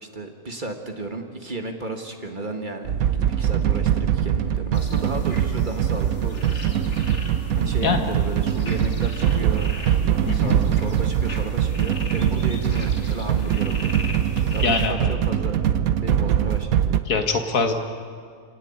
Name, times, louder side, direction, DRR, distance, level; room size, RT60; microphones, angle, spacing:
voice 1, 0.0-6.9 7.5-10.0 10.3-13.9 14.5-15.6 16.0-16.7, right 2 dB, 30° right, 4 dB, 2.0 m, -33 dB
sound 1, 2.9-17.0, right 9 dB, 70° right, 1.3 m, -22 dB
sound 2, 4.7-14.9, left 2 dB, 50° left, 2.7 m, -39 dB
voice 2, 14.6-15.1 17.1-17.7, left 4 dB, 65° left, 5 dB, 2.1 m, -23 dB
28.0 x 18.5 x 8.8 m, 2.2 s
omnidirectional pair, 1.6 m